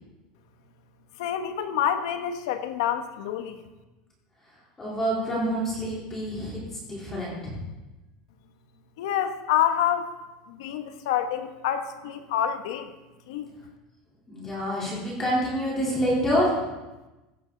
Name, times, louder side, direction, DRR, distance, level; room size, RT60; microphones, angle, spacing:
voice 1, 1.2-3.6 9.0-10.1 10.5-12.9 13.3-13.5, left 10 dB, 75° left, 7 dB, 1.4 m, -27 dB
voice 2, 4.8-7.6 14.3-16.6, equal, 15° left, -5 dB, 4.0 m, -27 dB
16.0 x 12.5 x 4.1 m, 1.1 s
supercardioid pair, 175°, 3 cm